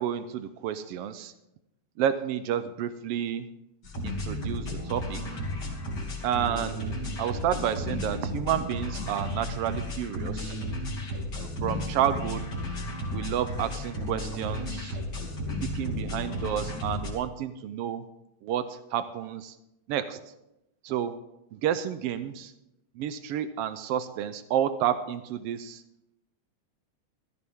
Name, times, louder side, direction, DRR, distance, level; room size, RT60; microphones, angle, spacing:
voice 1, 0.0-1.3 2.0-3.5 4.0-5.2 6.2-10.6 11.3-12.5 13.1-15.0 15.7-18.0 18.4-19.5 19.9-20.2 20.8-21.1 21.5-22.5 23.0-25.8, right 10 dB, 90° right, 11 dB, 1.3 m, -30 dB
sound 1, 3.8-17.1, left 1 dB, 35° left, 3.1 m, -33 dB
15.5 x 14.0 x 3.6 m, 0.87 s
omnidirectional pair, 3.4 m